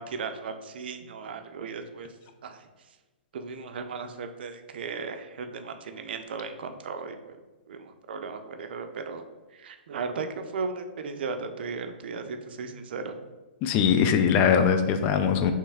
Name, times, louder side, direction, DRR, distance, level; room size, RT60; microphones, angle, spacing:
voice 1, 0.0-2.1 2.4-2.7 3.3-7.4 7.7-9.2 9.5-13.2, right 4 dB, 70° right, 7 dB, 0.5 m, -36 dB
voice 2, 13.6-15.5, left 7 dB, 35° left, 8 dB, 0.4 m, -21 dB
3.2 x 3.1 x 3.4 m, 1.2 s
hypercardioid pair, 135°, 6 cm